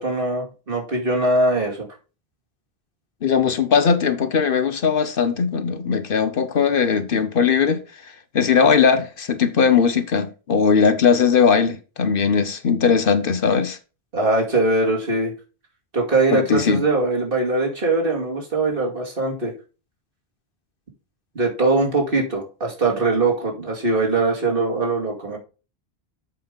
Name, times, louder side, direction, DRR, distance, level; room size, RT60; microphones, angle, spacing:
voice 1, 0.0-1.9 14.1-15.3 15.9-19.5 21.3-25.4, right 2 dB, 55° right, 2.7 m, -21 dB
voice 2, 3.2-13.8 16.3-16.8, left 6 dB, 60° left, 0.9 m, -19 dB
7.8 x 5.5 x 5.2 m
omnidirectional pair, 1.1 m